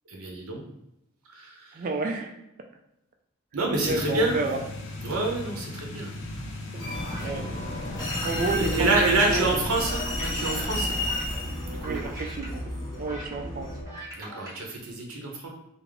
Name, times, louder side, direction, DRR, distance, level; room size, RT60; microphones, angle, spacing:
voice 1, 0.1-0.6 1.3-1.9 3.5-4.4 5.0-6.1 8.5-11.0 11.6-12.0 14.1-15.5, right 2 dB, 85° right, 0 dB, 0.8 m, -27 dB
voice 2, 1.7-2.3 3.8-4.6 7.2-7.5 8.2-8.9 9.3-9.6 11.8-12.7 13.0-13.7, right 3 dB, 40° right, 4 dB, 0.3 m, -30 dB
sound 1, 3.8-10.3, left 1 dB, 60° left, 0.5 m, -37 dB
sound 2, 6.7-14.6, equal, 15° right, 0.9 m, -42 dB
sound 3, 6.8-13.8, left 1 dB, 20° left, 0.7 m, -32 dB
3.4 x 2.0 x 3.6 m, 0.86 s
head